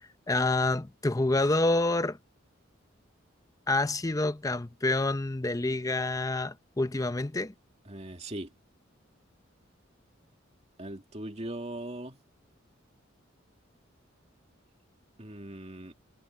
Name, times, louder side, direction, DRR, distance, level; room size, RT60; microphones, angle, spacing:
voice 1, 0.3-2.2 3.7-7.5, left 2 dB, 15° left, 0.6 m, -27 dB
voice 2, 7.9-8.5 10.8-12.2 15.2-15.9, right 1 dB, 35° right, 2.4 m, -39 dB
head